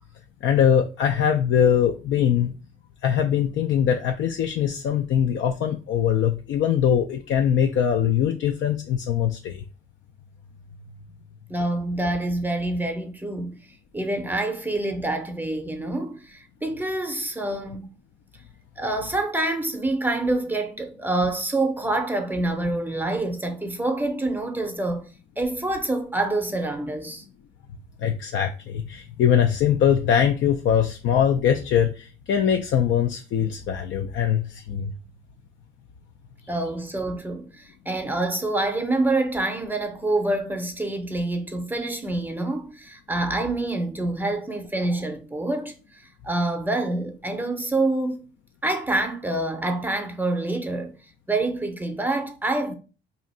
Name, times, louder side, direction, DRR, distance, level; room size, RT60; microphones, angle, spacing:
voice 1, 0.4-2.5 3.0-9.6 28.0-34.9, left 8 dB, 70° left, 0.4 m, -22 dB
voice 2, 11.5-13.5 13.9-17.9 18.8-25.1 25.4-27.2 36.5-48.2 48.6-50.9 51.3-52.7, right 2 dB, 10° right, 0.6 m, -26 dB
2.7 x 2.5 x 4.2 m
cardioid pair, 90°, 20 cm